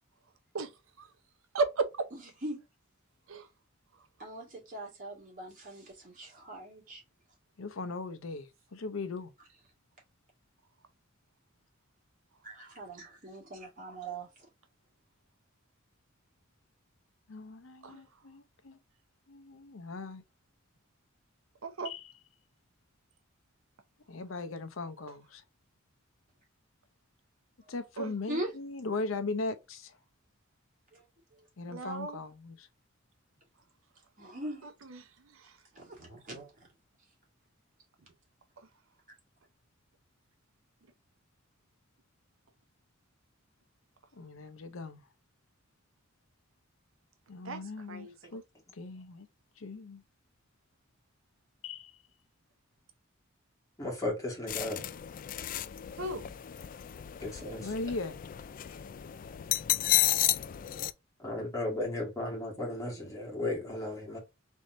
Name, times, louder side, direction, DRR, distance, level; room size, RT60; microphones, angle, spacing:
voice 1, 1.5-2.1 3.3-3.5 17.8-18.0 21.6-21.9 28.0-28.1 31.7-32.2 34.6-35.6 38.6-38.7 47.4-48.4 56.0-56.3, right 3 dB, 75° right, 0.7 m, -35 dB
voice 2, 4.2-7.0 12.4-14.3 28.3-28.5 30.9-31.0 31.3-31.4 34.2-34.7 35.7-36.5, right 1 dB, 40° right, 2.4 m, -41 dB
voice 3, 7.6-9.3 17.3-18.8 19.3-20.2 21.8-22.1 24.1-25.4 27.7-30.0 31.6-32.7 44.1-45.0 47.3-48.4 48.7-49.3 49.6-50.0 51.6-51.9 57.6-58.2, left 3 dB, 75° left, 0.7 m, -39 dB
voice 4, 53.8-54.8 57.2-57.6 61.2-64.2, left 2 dB, 15° left, 2.0 m, -35 dB
sound 1, 54.5-60.9, left 13 dB, 45° left, 0.3 m, -32 dB
4.1 x 3.5 x 2.6 m
head